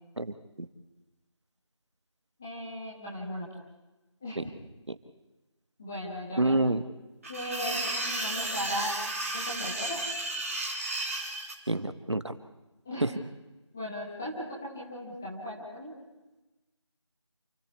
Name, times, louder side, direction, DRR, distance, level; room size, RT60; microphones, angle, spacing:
voice 1, 2.4-3.5 4.2-4.4 5.8-6.6 7.3-8.9 9.3-10.1 12.8-13.1 13.7-14.4 14.7-15.9, left 1 dB, 5° left, -5 dB, 1.0 m, -37 dB
voice 2, 6.4-6.8 11.7-12.3 13.0-13.1, right 2 dB, 65° right, 11 dB, 1.6 m, -27 dB
sound 1, 7.2-11.5, right 2 dB, 30° right, 2.9 m, -33 dB
29.0 x 14.5 x 8.2 m, 1.1 s
figure-of-eight pair, 170°, 16 cm